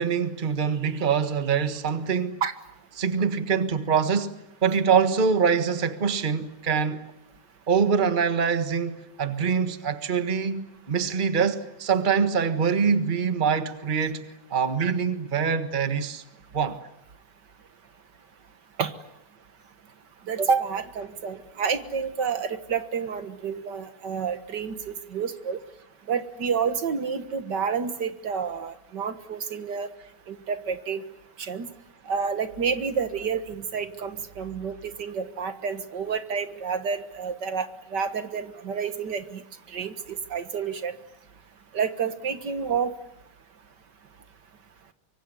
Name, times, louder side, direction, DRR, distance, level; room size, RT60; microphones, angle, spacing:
voice 1, 0.0-2.4 3.0-4.4 4.6-7.0 7.7-14.2 14.5-16.2 16.5-16.8, right 6 dB, 30° right, 1.5 m, -24 dB
voice 2, 20.3-25.6 26.1-29.9 30.3-31.0 31.4-31.7 32.1-39.4 39.7-39.9 40.3-40.9 41.7-42.9, right 6 dB, 70° right, 2.1 m, -29 dB
25.0 x 24.5 x 9.5 m
omnidirectional pair, 1.9 m